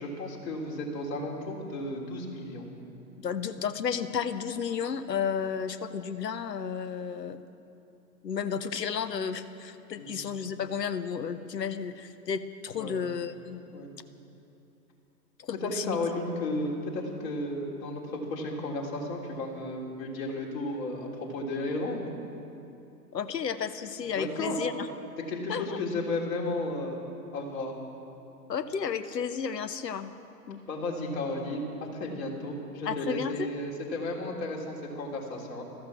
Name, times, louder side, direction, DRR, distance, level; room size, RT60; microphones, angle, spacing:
voice 1, 0.0-2.7 10.0-10.2 12.7-13.0 13.7-13.9 15.5-22.0 24.2-24.6 25.3-27.0 27.3-27.7 30.7-35.6, left 2 dB, 50° left, -1 dB, 3.4 m, -33 dB
voice 2, 3.2-7.4 8.2-13.6 15.4-16.0 23.1-24.9 25.5-25.8 28.5-30.1 30.5-30.6 32.9-33.3, left 7 dB, 75° left, 12 dB, 1.0 m, -32 dB
15.0 x 14.0 x 6.1 m, 2.8 s
figure-of-eight pair, 110°, 50 cm